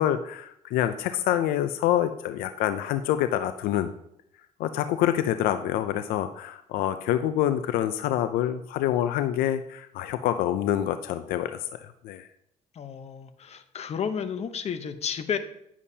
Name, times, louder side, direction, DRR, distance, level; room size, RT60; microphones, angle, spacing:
voice 1, 0.0-3.9 4.6-12.3, left 11 dB, 85° left, 10 dB, 0.4 m, -26 dB
voice 2, 12.7-15.4, left 7 dB, 45° left, 9 dB, 0.8 m, -32 dB
10.0 x 7.2 x 2.8 m, 0.74 s
cardioid pair, 105°, 15 cm